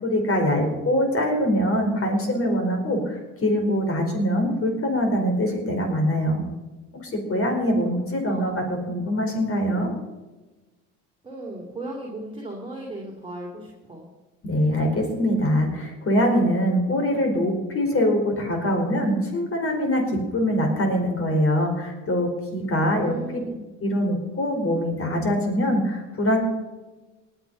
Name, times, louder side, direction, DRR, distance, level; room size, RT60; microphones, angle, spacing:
voice 1, 0.0-6.4 7.0-9.9 14.4-23.1 23.8-26.4, equal, 45° left, 3 dB, 4.8 m, -23 dB
voice 2, 7.8-8.6 11.2-14.1 23.0-23.6, right 1 dB, 15° right, -2 dB, 3.1 m, -37 dB
20.0 x 8.1 x 5.5 m, 1.1 s
cardioid pair, 90°, 30 cm